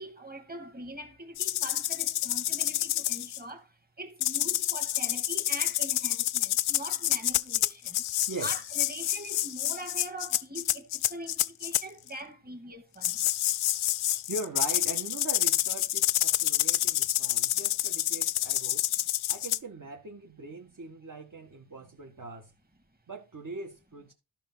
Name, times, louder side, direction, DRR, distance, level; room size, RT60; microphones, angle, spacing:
voice 1, 0.0-8.1 8.4-13.3, right 1 dB, 20° right, 2.3 m, -42 dB
sound 1, 1.4-3.4 4.2-11.8 13.0-19.6, left 14 dB, 75° left, 0.6 m, -28 dB
voice 2, 8.3-8.6 14.1-18.8 19.3-22.5 23.1-24.1, right 3 dB, 40° right, 1.8 m, -41 dB
12.0 x 5.9 x 4.0 m
cardioid pair, 70°, 49 cm